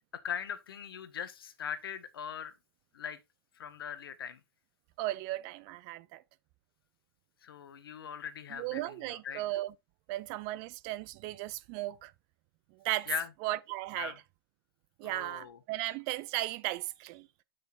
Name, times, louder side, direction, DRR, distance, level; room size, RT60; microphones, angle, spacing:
voice 1, 0.1-2.5 2.9-3.2 3.6-4.4 7.4-9.4 13.1-13.3 14.0-14.2 15.0-15.6, left 8 dB, 65° left, 1.3 m, -40 dB
voice 2, 5.0-6.2 8.6-9.7 10.1-12.1 12.7-13.1 13.4-14.1 15.0-17.3, right 17 dB, 35° right, 0.5 m, -36 dB
8.0 x 6.2 x 2.6 m
hypercardioid pair, 120°, 13 cm